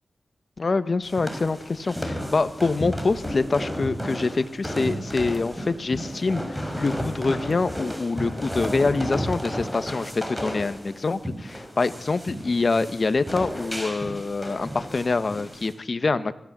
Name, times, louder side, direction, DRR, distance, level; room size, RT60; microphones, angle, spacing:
voice 1, 0.6-16.3, left 3 dB, 55° left, 12 dB, 1.4 m, -25 dB
sound 1, 1.0-15.7, equal, ahead, 5.9 m, -33 dB
24.0 x 15.5 x 7.6 m, 0.81 s
cardioid pair, 55°, 0 cm